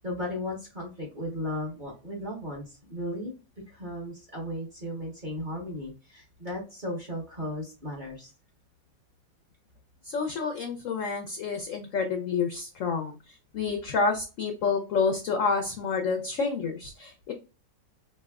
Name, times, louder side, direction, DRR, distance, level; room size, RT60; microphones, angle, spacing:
voice 1, 0.0-3.3 3.7-8.3, left 1 dB, 35° right, -2 dB, 0.9 m, -35 dB
voice 2, 10.0-17.3, left 4 dB, 70° left, 4 dB, 0.7 m, -29 dB
4.0 x 3.1 x 2.3 m, 0.33 s
omnidirectional pair, 1.9 m